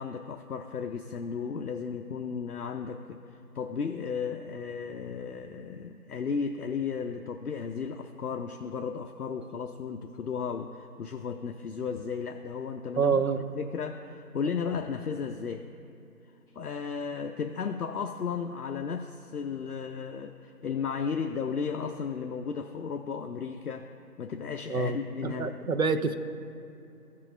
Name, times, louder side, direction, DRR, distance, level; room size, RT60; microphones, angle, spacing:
voice 1, 0.0-13.3 13.6-15.6 16.5-23.9 24.2-25.5, left 6 dB, 70° left, 5 dB, 0.5 m, -34 dB
voice 2, 13.0-13.4 24.7-25.0 25.2-26.2, right 5 dB, 65° right, 10 dB, 0.6 m, -26 dB
14.5 x 5.6 x 2.5 m, 2.7 s
figure-of-eight pair, 175°, 47 cm